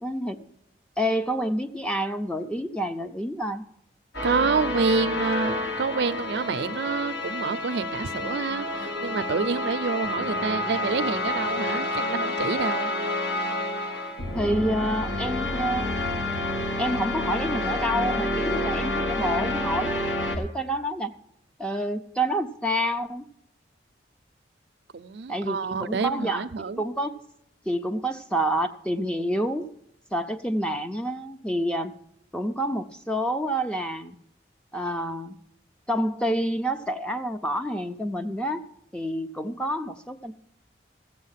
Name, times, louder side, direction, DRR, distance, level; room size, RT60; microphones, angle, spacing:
voice 1, 0.0-0.5 1.0-3.6 14.3-15.9 16.8-20.1 20.4-21.1 21.6-23.2 25.3-26.5 26.8-27.2 27.7-29.6 30.1-31.9 32.3-34.2 34.7-35.4 35.9-38.6 38.9-40.3, equal, 5° left, 0.5 m, -28 dB
sound 1, 4.1-20.4, left 1 dB, 70° left, 1.6 m, -29 dB
voice 2, 4.2-12.9 24.9-26.8, right 4 dB, 65° right, 0.4 m, -28 dB
15.0 x 7.8 x 5.7 m
head